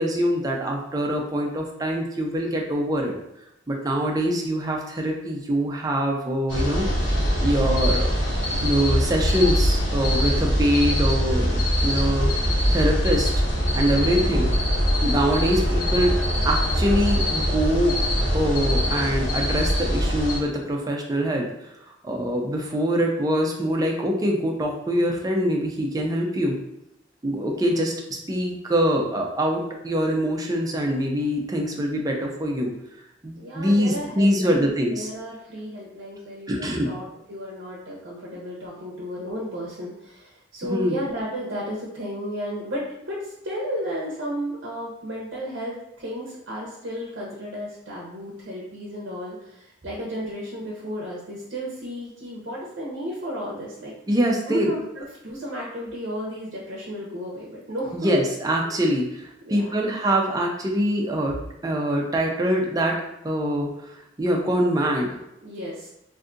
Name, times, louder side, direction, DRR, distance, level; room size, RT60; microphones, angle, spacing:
voice 1, 0.0-3.1 3.7-6.9 7.4-8.1 8.6-12.3 12.7-13.3 13.7-14.5 15.0-16.1 16.4-18.0 18.3-21.4 22.0-26.6 27.2-32.7 33.2-35.1 36.5-36.9 40.6-41.0 54.1-54.7 57.9-61.3 61.6-63.7 64.2-65.1, equal, 20° right, 0 dB, 0.4 m, -24 dB
sound 1, 6.5-20.4, equal, 85° left, 1.2 m, -23 dB
voice 2, 13.9-14.4 33.4-53.9 54.5-58.1 59.5-59.9 65.4-65.9, equal, 60° right, -4 dB, 0.6 m, -33 dB
2.6 x 2.4 x 3.6 m, 0.85 s
head